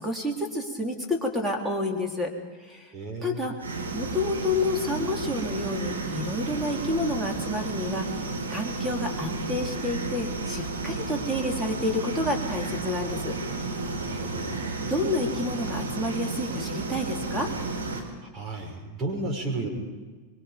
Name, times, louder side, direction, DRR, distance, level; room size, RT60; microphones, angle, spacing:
voice 1, 0.0-2.3 2.6-2.9 3.2-3.6 3.9-13.4 14.1-14.2 14.9-17.5, left 2 dB, 5° right, 1 dB, 3.9 m, -29 dB
voice 2, 2.9-3.5 13.9-14.8 18.2-19.7, right 2 dB, 25° right, 0 dB, 6.7 m, -33 dB
sound 1, 3.6-18.0, right 3 dB, 75° right, 4.0 m, -32 dB
25.0 x 23.0 x 5.3 m, 1.3 s
figure-of-eight pair, 90°, 0 cm